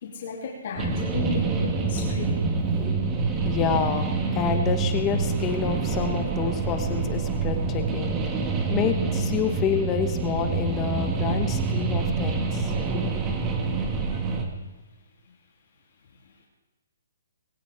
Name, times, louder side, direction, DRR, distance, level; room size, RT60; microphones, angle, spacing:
voice 1, 0.0-2.6, left 4 dB, 50° left, -2 dB, 2.9 m, -34 dB
sound 1, 0.8-14.5, right 4 dB, 15° right, 1.8 m, -26 dB
voice 2, 2.8-3.2 3.4-13.1, left 8 dB, 20° left, 7 dB, 1.0 m, -29 dB
21.0 x 17.0 x 3.5 m, 1.2 s
hypercardioid pair, 160°, 0 cm